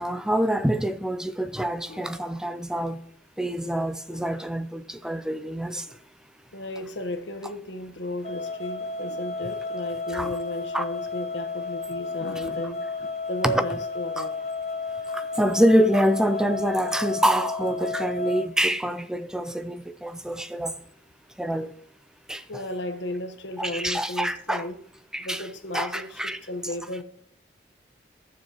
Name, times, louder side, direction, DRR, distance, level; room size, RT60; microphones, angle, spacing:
voice 1, 0.0-3.0 3.4-5.9 10.1-10.3 10.7-10.8 13.5-13.6 14.2-14.3 15.1-20.8 21.4-21.7 22.3-22.4 23.6-24.6 25.1-25.4 25.7-26.4, equal, 5° right, 0.4 m, -26 dB
voice 2, 1.9-2.2 4.1-4.2 5.9-6.0 6.5-14.4 20.6-20.7 22.5-24.8 25.2-27.0, left 1 dB, 90° left, 1.1 m, -34 dB
sound 1, 8.2-18.5, left 4 dB, 35° left, 0.6 m, -32 dB
11.5 x 7.2 x 2.9 m
head